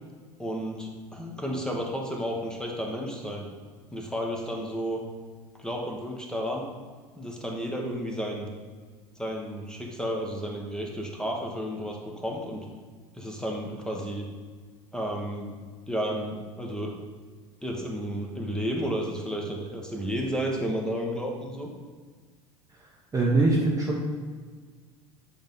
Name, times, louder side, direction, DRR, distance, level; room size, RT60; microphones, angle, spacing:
voice 1, 0.4-3.5 3.9-5.0 5.6-6.7 7.1-8.5 9.2-12.7 13.1-14.3 14.9-15.5 15.9-16.9 17.6-21.7, equal, 5° left, 0 dB, 1.3 m, -32 dB
voice 2, 23.1-24.0, right 2 dB, 20° right, -2 dB, 1.0 m, -23 dB
8.5 x 3.9 x 3.8 m, 1.5 s
figure-of-eight pair, 75°, 18 cm